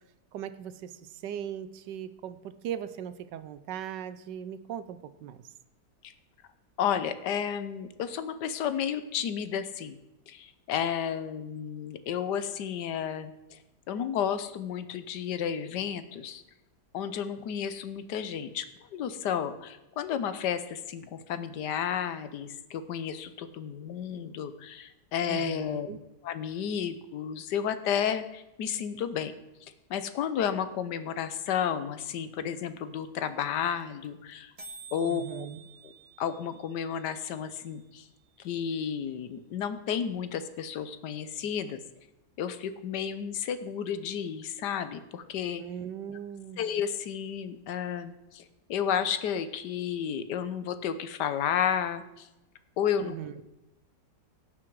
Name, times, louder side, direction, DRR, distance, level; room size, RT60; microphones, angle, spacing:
voice 1, 0.3-5.4 25.2-26.0 35.1-35.6 45.6-46.7 53.0-53.4, right 9 dB, 80° right, 13 dB, 1.3 m, -39 dB
voice 2, 6.8-10.0 10.3-13.6 13.9-16.4 16.9-18.6 18.9-25.9 26.2-29.3 29.6-34.5 34.9-35.5 35.8-35.9 36.2-38.1 38.4-41.8 42.4-45.6 46.6-52.3 52.8-53.2, left 8 dB, 75° left, 11 dB, 1.4 m, -32 dB
sound 1, 32.5-32.6 32.8-32.9 33.0-33.3 33.5-33.6 33.8-34.0 34.3-34.4 34.6-38.5, right 4 dB, 25° right, 1.1 m, -51 dB
17.0 x 6.1 x 4.7 m, 0.95 s
omnidirectional pair, 1.9 m